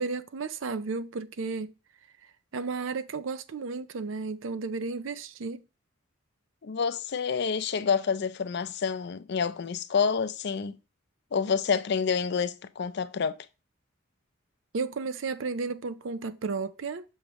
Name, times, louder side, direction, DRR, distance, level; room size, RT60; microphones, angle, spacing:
voice 1, 0.0-1.7 2.5-5.6 14.7-17.0, right 4 dB, 85° right, 0.6 m, -33 dB
voice 2, 6.6-10.8 11.3-13.4, left 6 dB, 60° left, 0.5 m, -28 dB
6.3 x 5.1 x 3.0 m
head